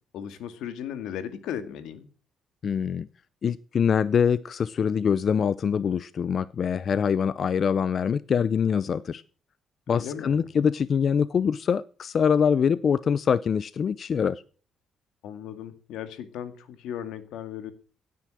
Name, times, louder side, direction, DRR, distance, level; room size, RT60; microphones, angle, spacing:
voice 1, 0.1-2.1 9.9-10.4 15.2-17.7, left 9 dB, 90° left, 11 dB, 2.0 m, -36 dB
voice 2, 2.6-3.1 3.4-9.2 9.9-14.4, left 7 dB, 50° left, 18 dB, 0.6 m, -24 dB
17.0 x 9.5 x 6.2 m, 0.40 s
cardioid pair, 90°, 0 cm